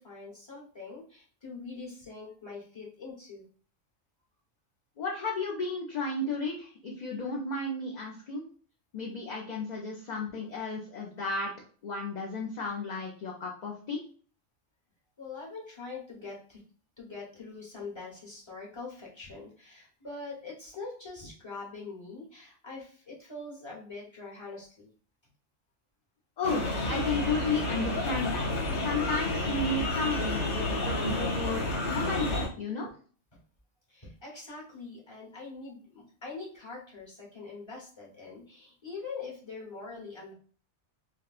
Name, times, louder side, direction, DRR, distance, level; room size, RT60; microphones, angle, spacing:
voice 1, 0.0-3.4 15.2-16.6 17.0-24.9 33.3-33.4 33.9-40.3, left 3 dB, 25° left, -3 dB, 1.0 m, -43 dB
voice 2, 5.0-8.4 8.9-11.5 11.8-14.0 26.4-28.5 28.8-32.9, left 3 dB, 50° left, -2 dB, 0.6 m, -33 dB
sound 1, 26.4-32.5, left 1 dB, 70° left, 1.6 m, -30 dB
4.2 x 2.1 x 2.4 m, 0.43 s
omnidirectional pair, 1.2 m